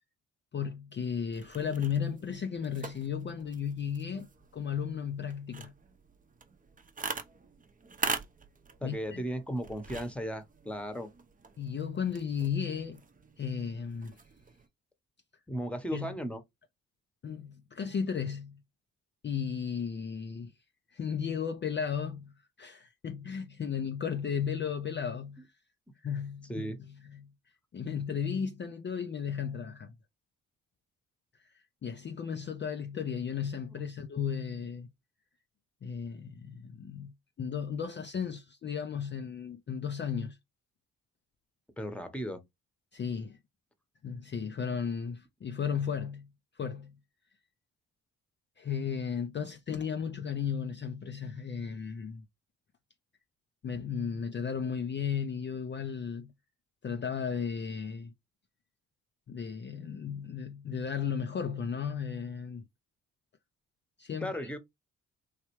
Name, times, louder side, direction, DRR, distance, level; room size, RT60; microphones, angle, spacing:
voice 1, 0.5-4.3 4.5-5.7 8.8-9.2 11.6-13.0 13.4-14.2 15.9-16.1 17.2-18.6 19.2-20.5 20.9-22.3 22.6-25.5 26.0-27.3 27.7-29.9 31.4-34.9 35.8-40.4 42.9-43.4 44.0-46.3 46.5-46.9 48.6-52.2 53.6-56.3 56.8-58.1 59.3-62.6 64.0-64.5, left 7 dB, 35° left, 0.5 m, -35 dB
sound 1, 1.3-14.7, right 4 dB, 25° right, 0.7 m, -43 dB
voice 2, 8.8-11.1 15.5-16.4 26.5-26.8 41.8-42.4 64.2-64.6, equal, 5° left, 1.0 m, -35 dB
3.1 x 2.3 x 3.1 m
supercardioid pair, 55°, 33 cm